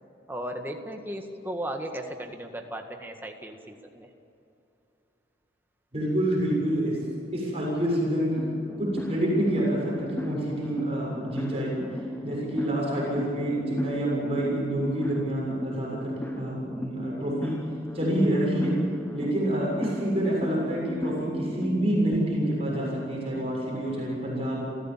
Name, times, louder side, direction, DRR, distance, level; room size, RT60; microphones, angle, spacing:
voice 1, 0.3-4.1, right 1 dB, 10° right, 3 dB, 1.8 m, -36 dB
voice 2, 5.9-7.0 7.3-11.8 12.2-17.6 17.9-18.8 19.1-24.6, right 1 dB, 35° right, -3 dB, 7.1 m, -27 dB
sound 1, 8.4-22.2, left 1 dB, 10° left, 1.1 m, -37 dB
29.5 x 15.0 x 7.6 m, 2.8 s
head